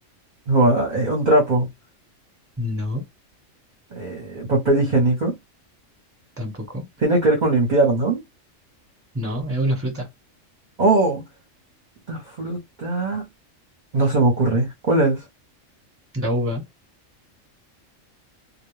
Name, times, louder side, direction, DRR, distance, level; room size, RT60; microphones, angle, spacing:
voice 1, 0.5-1.7 3.9-5.3 7.0-8.2 10.8-11.2 12.1-13.2 13.9-15.2, right 2 dB, 40° right, 0.8 m, -20 dB
voice 2, 2.6-3.0 6.4-6.8 9.1-10.1 16.1-16.6, equal, 10° right, 1.0 m, -25 dB
2.3 x 2.2 x 3.1 m
omnidirectional pair, 1.4 m